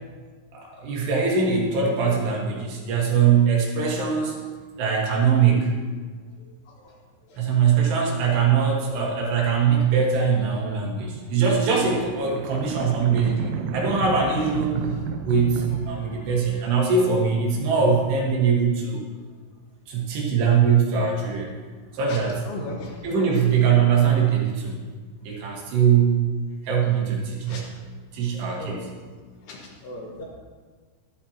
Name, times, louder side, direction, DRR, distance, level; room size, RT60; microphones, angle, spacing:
voice 1, 0.5-4.4 4.8-5.7 7.4-14.8 15.2-19.0 19.9-21.5 21.9-22.4 23.0-24.8 25.2-26.3 26.6-27.7 28.1-28.9, right 6 dB, 65° right, -2 dB, 3.4 m, -22 dB
sound 1, 11.0-16.9, right 7 dB, 85° right, 2.8 m, -32 dB
voice 2, 16.0-16.4 22.1-22.2 22.4-23.0 27.4-27.6 28.5-28.9 29.4-30.3, left 2 dB, 65° left, -2 dB, 3.0 m, -38 dB
13.5 x 12.0 x 2.9 m, 1.5 s
omnidirectional pair, 5.8 m